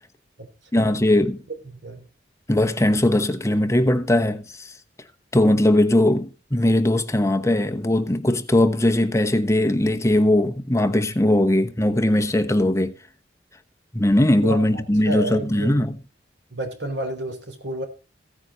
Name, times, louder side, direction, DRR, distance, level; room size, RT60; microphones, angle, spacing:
voice 1, 0.7-1.4 2.5-4.7 5.3-12.9 13.9-15.9, left 1 dB, 15° left, 1.0 m, -20 dB
voice 2, 1.6-2.0 14.4-15.8 16.5-17.9, right 1 dB, 90° right, 3.7 m, -31 dB
16.0 x 9.5 x 4.0 m
head